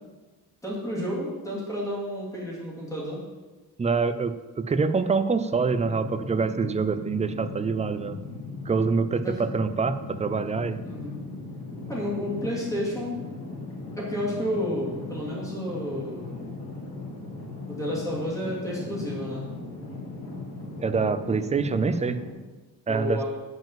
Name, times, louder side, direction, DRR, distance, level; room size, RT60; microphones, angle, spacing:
voice 1, 0.6-3.2 9.2-9.4 10.8-11.1 11.9-13.2 14.0-16.3 17.7-19.4 22.9-23.2, equal, 10° left, -6 dB, 2.8 m, -31 dB
voice 2, 3.8-8.2 8.7-10.8 20.8-22.2 22.9-23.2, right 4 dB, 20° right, 11 dB, 0.3 m, -25 dB
sound 1, 5.6-22.3, left 2 dB, 75° left, 2.3 m, -38 dB
7.5 x 5.2 x 7.4 m, 1.2 s
wide cardioid pair, 165°, 38 cm